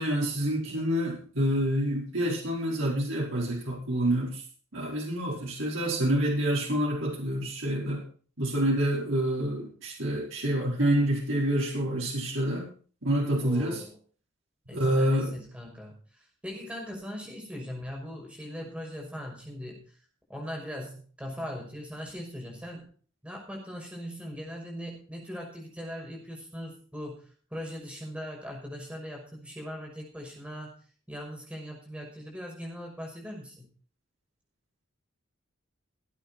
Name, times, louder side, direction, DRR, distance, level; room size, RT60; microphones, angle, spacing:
voice 1, 0.0-4.4 4.7-8.0 8.4-12.6 13.0-13.8 14.7-15.3, right 1 dB, 80° right, -3 dB, 4.9 m, -27 dB
voice 2, 13.4-14.0 14.7-19.8 20.3-22.9 23.2-27.2 27.5-30.8 31.1-33.7, equal, 5° right, -1 dB, 5.7 m, -40 dB
18.0 x 8.9 x 4.4 m, 0.43 s
head